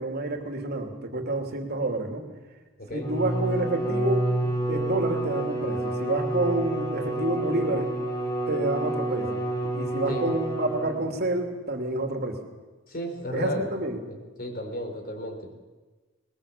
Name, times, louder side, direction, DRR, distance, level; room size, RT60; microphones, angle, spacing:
voice 1, 0.0-2.3 2.9-7.9 8.5-9.4 9.7-12.4 13.3-14.0, right 2 dB, 55° right, 3 dB, 3.0 m, -29 dB
Bowed string instrument, 3.0-11.3, right 1 dB, 20° left, 4.4 m, -29 dB
voice 2, 12.9-13.7 14.4-15.5, equal, 50° left, 4 dB, 4.5 m, -33 dB
21.5 x 21.0 x 7.3 m, 1.3 s
head